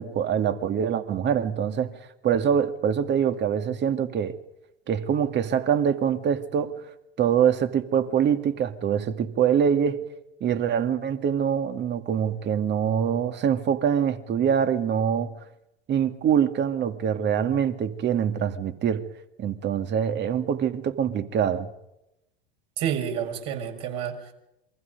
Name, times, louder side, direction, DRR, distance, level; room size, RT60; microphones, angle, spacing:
voice 1, 0.0-1.9 2.2-4.4 4.9-6.9 7.2-10.0 10.4-15.3 15.9-19.1 19.4-21.7, right 8 dB, 35° right, 2.1 m, -24 dB
voice 2, 22.8-24.3, right 9 dB, 55° right, 6.3 m, -29 dB
28.0 x 23.5 x 5.3 m
hypercardioid pair, 90°, 30 cm